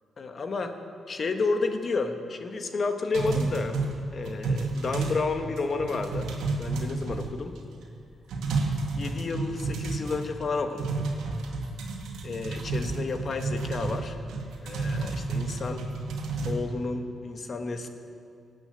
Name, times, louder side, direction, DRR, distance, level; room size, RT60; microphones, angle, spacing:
voice 1, 0.2-0.8 1.1-3.8 4.1-6.3 6.6-7.6 9.0-10.9 12.2-14.2 14.6-15.8 16.4-17.9, left 3 dB, 45° left, 6 dB, 1.4 m, -31 dB
sound 1, 3.1-5.3 5.6-7.6 8.0-8.1 8.3-10.5 10.8-16.5, right 3 dB, 85° right, 2.1 m, -31 dB
18.0 x 8.6 x 8.1 m, 2.4 s
cardioid pair, 90°, 0 cm